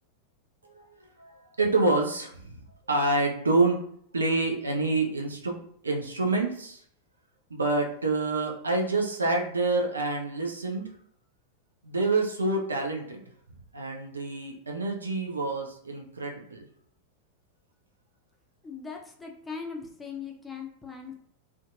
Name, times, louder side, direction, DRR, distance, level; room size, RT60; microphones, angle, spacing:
voice 1, 1.2-2.6 2.9-3.8 4.1-6.8 7.5-10.9 11.8-13.2 13.7-16.7, right 2 dB, 75° right, 2 dB, 0.4 m, -27 dB
voice 2, 18.6-21.1, left 5 dB, 10° left, 0 dB, 0.5 m, -39 dB
2.5 x 2.2 x 2.4 m, 0.64 s
figure-of-eight pair, 90°, 0 cm